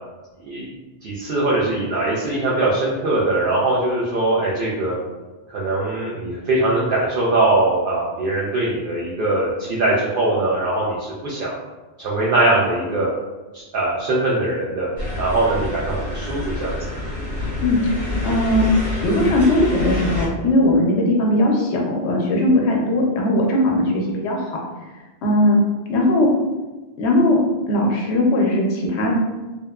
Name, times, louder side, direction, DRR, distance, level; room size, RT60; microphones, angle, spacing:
voice 1, 1.0-4.9 5.5-11.6 12.0-13.1 13.5-14.9 15.2-16.8, right 2 dB, 60° right, -6 dB, 0.7 m, -21 dB
sound 1, 15.0-20.3, left 2 dB, 85° right, 1.4 m, -27 dB
voice 2, 17.6-18.6 19.0-24.6 25.2-25.6 25.9-26.3 27.0-27.4 27.7-29.1, left 1 dB, 85° left, -1 dB, 0.9 m, -19 dB
2.8 x 2.1 x 2.3 m, 1.2 s
omnidirectional pair, 1.1 m